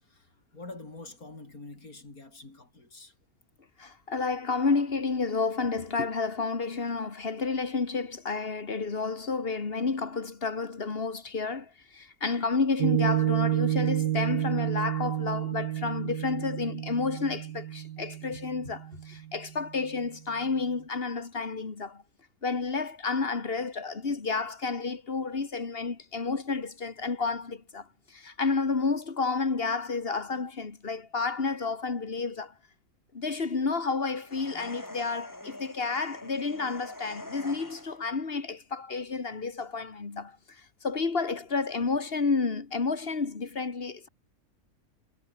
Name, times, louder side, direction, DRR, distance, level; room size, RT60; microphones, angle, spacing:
voice 1, 0.0-3.2, left 2 dB, 70° left, 5.3 m, -46 dB
voice 2, 3.8-22.0 22.4-32.5 33.1-44.1, left 4 dB, 40° left, 2.1 m, -31 dB
Piano, 12.8-19.5, right 12 dB, 90° right, 1.3 m, -30 dB
sound 1, 34.3-38.1, left 1 dB, 10° left, 2.5 m, -44 dB
omnidirectional pair, 1.6 m